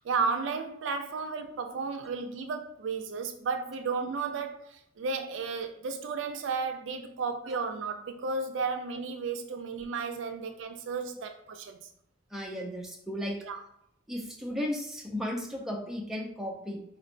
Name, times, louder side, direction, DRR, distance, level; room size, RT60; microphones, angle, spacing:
voice 1, 0.0-11.9 13.4-13.6, right 4 dB, 75° right, 0.4 m, -33 dB
voice 2, 12.3-13.5 14.1-16.8, left 1 dB, ahead, 0.5 m, -35 dB
4.3 x 3.1 x 2.5 m
head